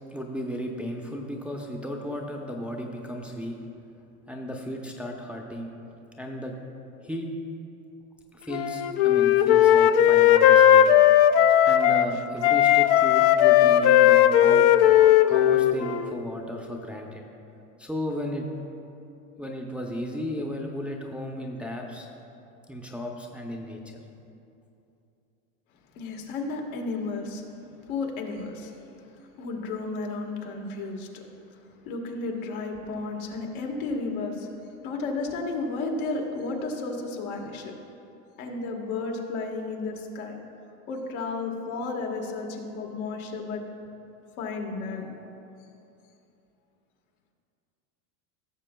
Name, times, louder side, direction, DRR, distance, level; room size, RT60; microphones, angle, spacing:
voice 1, 0.1-3.6 4.3-5.7 6.2-6.5 7.0-7.3 8.3-10.9 11.5-14.7 15.3-17.2 17.8-18.5 19.4-22.1 22.7-24.0, equal, 5° right, 0 dB, 0.6 m, -34 dB
Wind instrument woodwind instrument, 8.5-12.1 12.4-16.2, left 11 dB, 55° left, 0.5 m, -17 dB
voice 2, 25.9-27.4 27.9-28.7 29.4-31.6 31.8-34.5 34.8-37.7 38.4-40.3 40.9-43.6 44.4-45.1, left 3 dB, 75° left, 1 dB, 1.6 m, -33 dB
16.5 x 6.8 x 2.3 m, 2.7 s
supercardioid pair, 110°, 43 cm